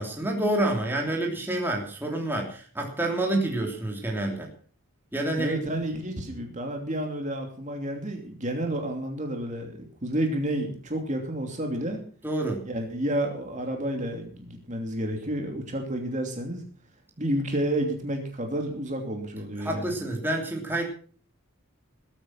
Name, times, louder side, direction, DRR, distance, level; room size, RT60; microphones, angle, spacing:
voice 1, 0.0-4.5 5.1-5.6 12.2-12.6 19.6-20.8, right 1 dB, 10° right, 0 dB, 3.0 m, -28 dB
voice 2, 5.3-12.0 12.6-16.6 17.2-19.9, right 1 dB, 35° right, 3 dB, 2.9 m, -30 dB
20.0 x 9.0 x 5.9 m, 0.43 s
head